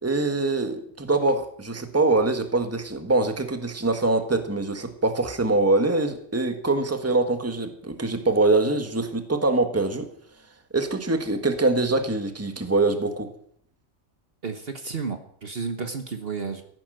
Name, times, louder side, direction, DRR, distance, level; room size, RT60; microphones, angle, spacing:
voice 1, 0.0-10.1 10.7-13.3, right 2 dB, 10° right, 7 dB, 1.4 m, -24 dB
voice 2, 14.4-16.6, right 5 dB, 50° right, 8 dB, 1.4 m, -32 dB
14.5 x 11.5 x 7.8 m, 0.65 s
omnidirectional pair, 1.4 m